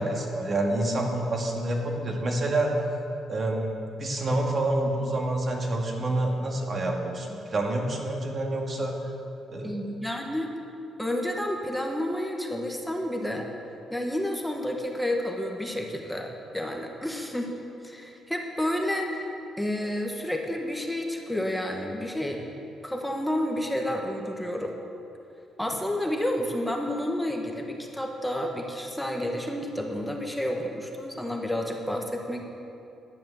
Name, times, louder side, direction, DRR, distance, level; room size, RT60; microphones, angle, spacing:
voice 1, 0.0-2.8 3.3-9.0 9.5-9.8, right 1 dB, 40° right, 0 dB, 2.1 m, -28 dB
voice 2, 9.6-10.5 11.0-13.5 13.9-17.5 17.8-19.3 19.6-22.4 22.8-24.7 25.6-32.4, left 1 dB, 5° left, 1 dB, 1.4 m, -30 dB
11.0 x 9.0 x 7.1 m, 2.7 s
cardioid pair, 90°, 0 cm